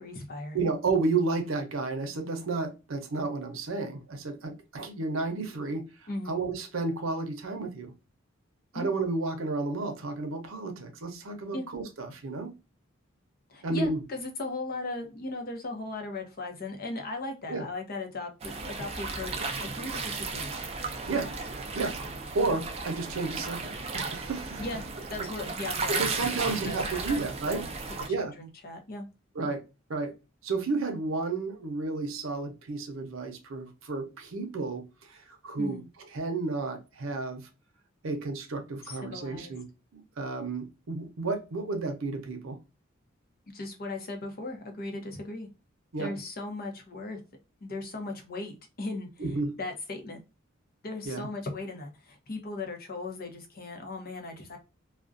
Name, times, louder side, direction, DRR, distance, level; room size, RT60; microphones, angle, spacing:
voice 1, 0.0-0.6 6.1-6.4 8.7-8.9 11.5-11.7 13.5-20.5 24.6-24.8 25.1-27.7 28.1-29.1 35.6-35.9 38.8-39.5 43.5-45.5 46.0-47.2 47.6-49.2 49.6-50.2 50.8-54.6, left 2 dB, 50° left, 0.6 m, -37 dB
voice 2, 0.5-7.9 8.7-12.5 13.6-14.0 17.5-17.7 21.1-21.3 21.7-22.0 22.3-24.6 25.7-27.7 28.1-28.4 29.4-29.6 29.9-30.1 30.4-35.8 36.1-37.4 38.0-39.6 39.9-42.6 45.9-46.1 49.2-49.5 51.0-51.3, right 3 dB, 90° right, 0.6 m, -32 dB
sound 1, 18.4-28.1, right 4 dB, 30° right, 0.4 m, -35 dB
2.4 x 2.1 x 2.4 m
head